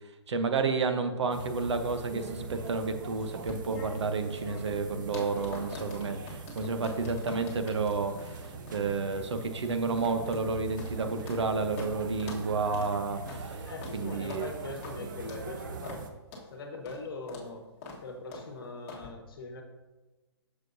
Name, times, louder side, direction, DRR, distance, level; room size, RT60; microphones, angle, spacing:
voice 1, 0.3-13.6 13.9-14.5, right 4 dB, 70° right, 7 dB, 0.9 m, -31 dB
sound 1, 1.3-16.1, right 4 dB, 45° right, 0.8 m, -42 dB
sound 2, 3.2-11.5 11.8-11.9 12.2-12.5 12.7-12.9 13.3-13.4 13.8-14.0 14.3-14.5 14.8-15.0 15.3-15.5 15.8-16.0 16.3-16.5 16.9-17.0 17.3-17.5 17.8-18.0 18.3-18.5 18.9-19.1, left 3 dB, 25° left, 1.5 m, -45 dB
voice 2, 13.7-16.0 16.5-17.7 18.0-19.6, left 3 dB, 50° left, 4 dB, 1.3 m, -41 dB
9.2 x 6.7 x 2.7 m, 1.2 s
hypercardioid pair, 160°, 15 cm